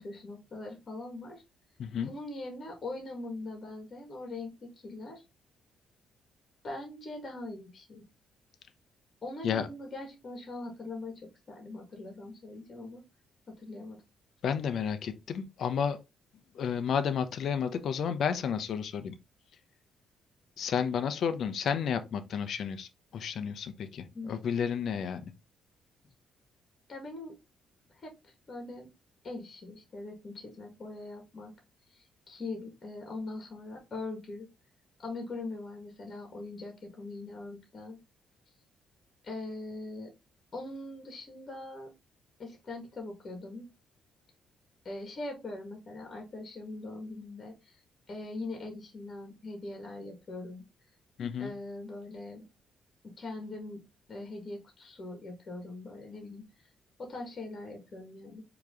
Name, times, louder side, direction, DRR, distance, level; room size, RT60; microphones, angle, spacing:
voice 1, 0.0-1.4 2.0-5.2 6.6-8.0 9.2-13.0 13.5-14.0 24.1-24.4 26.9-27.3 27.9-28.9 29.2-31.5 31.9-34.5 35.0-38.0 39.2-40.1 40.5-41.9 42.4-43.7 44.8-47.8 48.1-50.6 51.4-52.4 53.0-53.8 54.1-56.4 57.0-58.4, left 2 dB, 40° left, 1.8 m, -41 dB
voice 2, 1.8-2.1 9.4-9.7 14.4-16.0 16.5-19.1 20.6-25.3 51.2-51.5, left 7 dB, 65° left, 0.6 m, -31 dB
4.7 x 3.0 x 3.8 m
cardioid pair, 90°, 0 cm